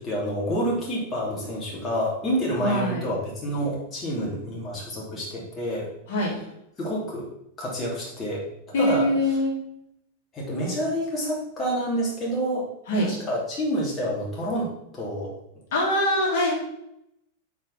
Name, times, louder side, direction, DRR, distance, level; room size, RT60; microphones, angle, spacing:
voice 1, 0.0-5.9 6.8-7.3 7.6-8.5 8.8-9.4 10.3-12.7 13.0-15.3, equal, 25° left, -4 dB, 2.8 m, -28 dB
voice 2, 2.6-3.1 6.1-6.3 8.7-9.6 12.9-13.1 15.7-16.5, left 1 dB, 55° left, -3 dB, 2.9 m, -23 dB
7.3 x 4.9 x 5.8 m, 0.80 s
figure-of-eight pair, 90°, 0 cm